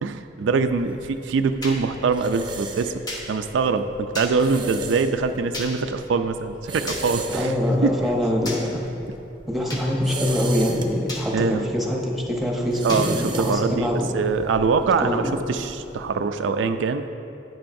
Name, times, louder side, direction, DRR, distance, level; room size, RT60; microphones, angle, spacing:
voice 1, 0.0-2.9 3.3-7.6 7.8-7.9 11.3-11.7 12.8-13.9 14.1-17.0, right 4 dB, 90° right, 8 dB, 0.4 m, -23 dB
sound 1, 0.7-16.1, right 3 dB, 25° right, 0.5 m, -37 dB
sound 2, 1.6-1.8 3.1-3.2 4.1-4.3 5.5-5.7 6.9-7.0 8.4-8.6 9.7-9.8 11.1-11.2 12.9-13.0, left 2 dB, 20° left, 1.0 m, -32 dB
voice 2, 7.3-8.8 9.5-14.1 14.8-15.3, left 1 dB, ahead, -2 dB, 0.9 m, -24 dB
10.5 x 9.1 x 2.6 m, 2.8 s
head